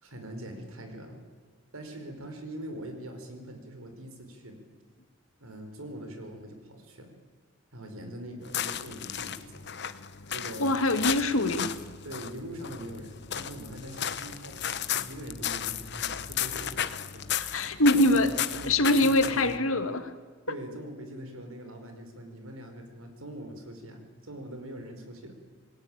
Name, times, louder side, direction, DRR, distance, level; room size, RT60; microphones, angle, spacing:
voice 1, 0.0-1.2 1.7-4.6 5.4-7.1 7.7-9.7 10.3-10.8 12.0-16.9 17.3-17.5 17.9-19.7 20.5-25.3, right 1 dB, 85° right, 6 dB, 4.9 m, -42 dB
sound 1, 8.4-19.6, left 9 dB, 55° left, 1.1 m, -34 dB
voice 2, 10.6-11.8 17.4-18.3 18.7-20.1, left 1 dB, 80° left, 8 dB, 2.2 m, -24 dB
27.5 x 19.5 x 8.9 m, 1.4 s
head